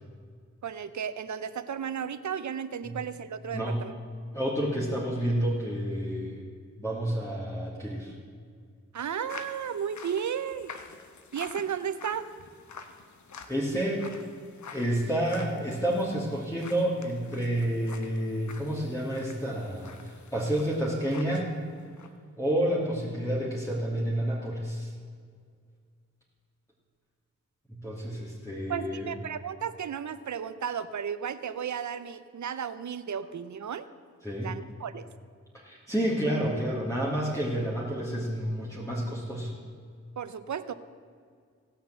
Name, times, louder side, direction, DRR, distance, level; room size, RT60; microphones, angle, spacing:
voice 1, 0.6-3.9 8.9-10.7 11.3-12.3 28.7-33.9 34.4-35.1 40.2-40.7, right 8 dB, 70° right, 13 dB, 0.7 m, -34 dB
voice 2, 3.5-3.8 4.3-6.4 6.7-8.1 13.5-14.1 14.7-21.6 22.4-24.9 27.7-29.1 34.2-34.5 35.5-39.5, right 1 dB, 10° left, -6 dB, 2.7 m, -29 dB
sound 1, 9.3-21.5 21.8-22.1, left 5 dB, 75° left, 1.0 m, -48 dB
17.0 x 5.8 x 7.6 m, 2.1 s
cardioid pair, 55°, 30 cm